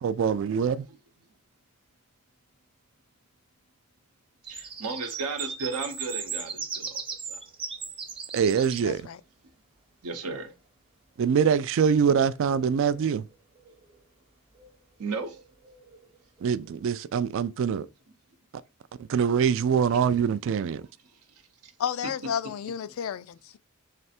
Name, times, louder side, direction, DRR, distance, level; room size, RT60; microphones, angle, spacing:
voice 1, 0.0-0.9 8.3-9.0 11.2-13.2 16.4-17.9 19.0-20.8, right 7 dB, 60° right, 0.3 m, -24 dB
sound 1, 4.4-8.9 12.4-13.3 13.5-14.0 14.5-14.7 15.0-16.8, right 5 dB, 25° right, 0.7 m, -38 dB
voice 2, 4.5-7.0 7.3-7.4 10.0-10.5 15.0-15.4 21.6-21.7, right 4 dB, 85° right, 0.8 m, -34 dB
voice 3, 8.8-9.2 21.8-23.6, left 8 dB, 65° left, 0.3 m, -32 dB
3.3 x 3.2 x 4.2 m
head